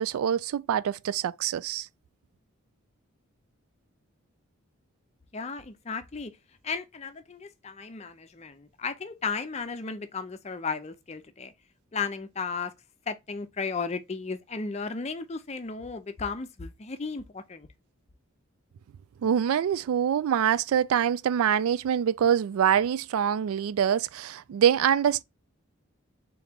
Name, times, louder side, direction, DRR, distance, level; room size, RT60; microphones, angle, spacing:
voice 1, 0.0-1.9 19.2-25.2, right 9 dB, 85° right, 0.3 m, -25 dB
voice 2, 5.3-6.3 6.6-11.5 11.9-12.7 13.1-17.7, left 5 dB, 30° left, 0.5 m, -34 dB
3.7 x 3.1 x 3.4 m
head